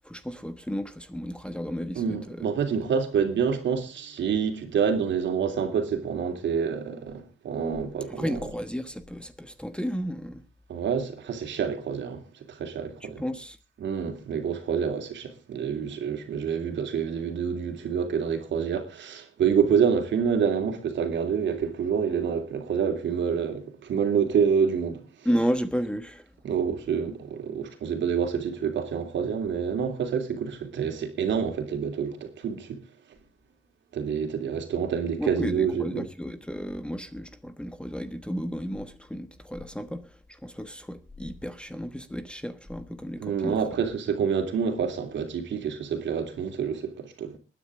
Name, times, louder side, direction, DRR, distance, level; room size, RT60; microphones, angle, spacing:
voice 1, 0.0-2.4 8.1-10.4 13.2-13.6 25.2-26.3 35.2-43.8, equal, 5° left, 1.2 m, -33 dB
voice 2, 1.9-8.4 10.7-13.2 13.8-25.0 26.4-32.8 33.9-36.1 43.2-47.4, right 7 dB, 65° right, 3.1 m, -27 dB
21.5 x 9.9 x 3.7 m
cardioid pair, 90°, 20 cm